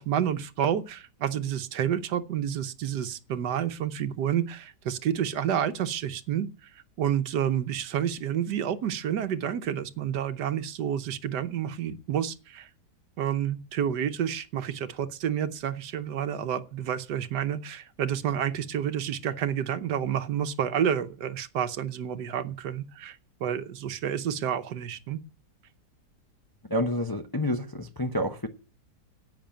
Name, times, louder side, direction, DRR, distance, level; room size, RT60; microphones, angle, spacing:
voice 1, 0.0-6.7 7.0-12.7 13.2-25.2, right 9 dB, 75° right, 1.5 m, -29 dB
voice 2, 26.7-28.5, left 1 dB, 20° left, 0.6 m, -28 dB
10.5 x 8.5 x 8.9 m
omnidirectional pair, 1.8 m